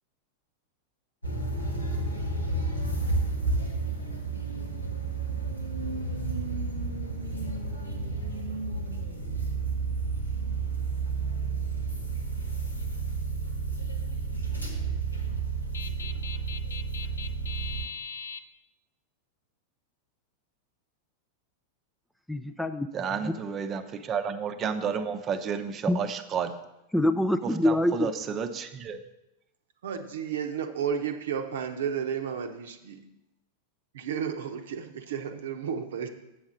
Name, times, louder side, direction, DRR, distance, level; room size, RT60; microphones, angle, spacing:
sound 1, 1.2-17.9, right 3 dB, 85° left, 1.5 m, -31 dB
voice 1, 15.7-18.4, left 6 dB, 70° left, 9 dB, 0.6 m, -40 dB
voice 2, 22.3-22.9 23.2-23.3 25.9-26.0 26.9-28.1, left 1 dB, 5° left, 9 dB, 0.4 m, -25 dB
voice 3, 22.9-26.5 27.4-29.0, right 6 dB, 30° right, 9 dB, 0.7 m, -31 dB
voice 4, 29.8-33.0 33.9-36.1, right 7 dB, 60° right, 7 dB, 0.8 m, -32 dB
8.0 x 6.4 x 6.1 m, 0.93 s
figure-of-eight pair, 90°, 0 cm